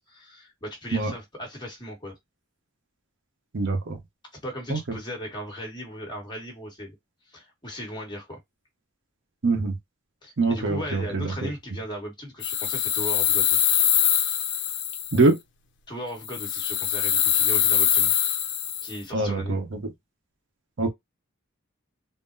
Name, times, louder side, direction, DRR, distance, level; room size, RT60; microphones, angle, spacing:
voice 1, 0.1-2.2 4.4-6.9 7.3-8.4 10.2-13.6 15.9-18.1 18.8-19.6, equal, 20° left, 1.3 m, -37 dB
voice 2, 3.5-4.0 4.7-5.0 9.4-9.8 10.4-11.5 15.1-15.4 19.1-19.8 20.8-20.9, right 3 dB, 60° right, 0.8 m, -24 dB
sound 1, 12.4-15.3 16.2-19.0, left 10 dB, 60° left, 0.6 m, -23 dB
3.7 x 2.0 x 2.5 m
head